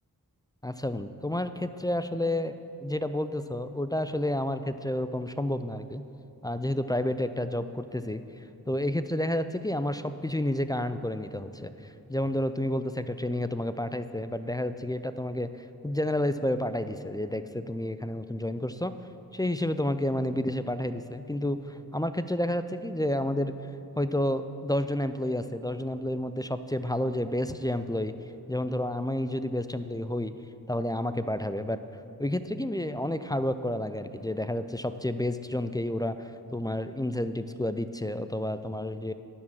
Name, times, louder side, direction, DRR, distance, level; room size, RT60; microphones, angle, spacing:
voice 1, 0.6-6.0 6.4-8.2 8.7-15.5 15.8-18.9 19.3-23.5 24.0-28.1 28.5-30.3 30.7-31.8 32.2-39.1, left 1 dB, 10° left, 11 dB, 0.4 m, -30 dB
9.9 x 6.1 x 7.1 m, 2.9 s
cardioid pair, 55°, 37 cm